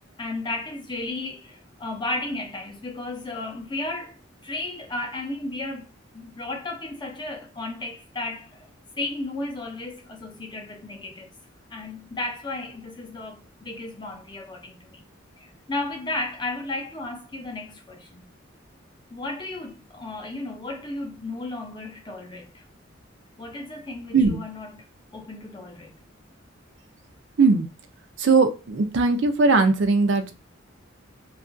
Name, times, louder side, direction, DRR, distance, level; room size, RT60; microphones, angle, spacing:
voice 1, 0.2-4.2 4.4-8.7 9.0-11.4 11.7-15.0 15.4-18.3 19.1-22.6 23.4-24.9 25.1-25.9, left 2 dB, 25° left, 0.5 m, -34 dB
voice 2, 28.2-30.3, right 4 dB, 65° right, 0.5 m, -19 dB
2.8 x 2.4 x 2.5 m
head